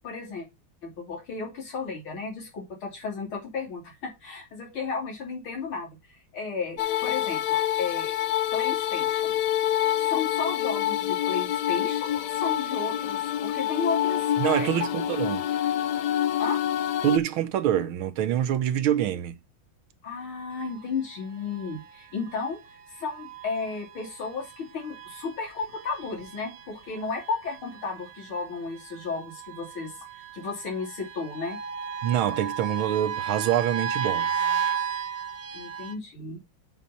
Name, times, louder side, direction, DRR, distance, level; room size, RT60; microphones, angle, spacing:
voice 1, 0.0-0.5 0.8-8.2 8.5-9.3 10.0-14.9 16.4-16.6 20.0-29.9 30.3-31.6 35.5-36.4, left 4 dB, 90° left, 3.7 m, -34 dB
sound 1, 6.8-17.2, left 11 dB, 70° left, 1.0 m, -27 dB
voice 2, 14.4-15.4 17.0-19.3 32.0-34.3, right 11 dB, 85° right, 1.6 m, -25 dB
sound 2, 20.5-35.9, right 7 dB, 65° right, 1.6 m, -35 dB
8.2 x 4.0 x 5.6 m
omnidirectional pair, 2.2 m